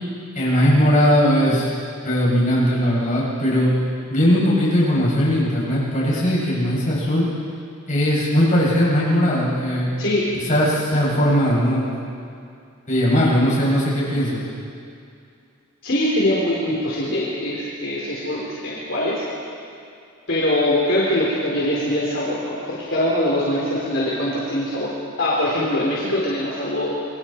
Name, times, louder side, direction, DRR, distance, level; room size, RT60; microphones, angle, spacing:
voice 1, 0.3-1.7 2.0-3.7 4.1-7.3 7.9-9.9 10.3-12.0 12.9-14.4, equal, 35° left, -7 dB, 7.8 m, -19 dB
voice 2, 10.0-10.7 15.8-19.2 20.3-24.9 25.2-27.0, left 1 dB, 60° left, -6 dB, 3.9 m, -23 dB
27.5 x 23.0 x 4.6 m, 2.4 s
head